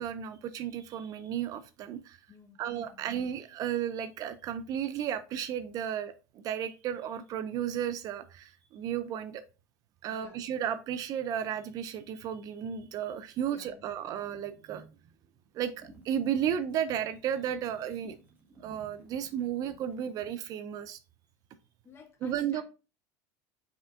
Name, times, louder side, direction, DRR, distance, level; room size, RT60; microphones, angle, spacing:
voice 1, 0.0-2.2 2.6-9.4 10.0-14.9 15.5-18.2 18.6-21.0 22.2-22.6, right 9 dB, 40° right, 0.4 m, -34 dB
voice 2, 2.3-2.6 2.9-3.0 10.1-10.4 13.4-14.0 16.6-16.8 21.8-22.6, left 6 dB, 25° left, 0.9 m, -54 dB
sound 1, 15.7-20.5, right 3 dB, 25° right, 1.3 m, -58 dB
5.4 x 3.3 x 2.4 m
supercardioid pair, 135°, 9 cm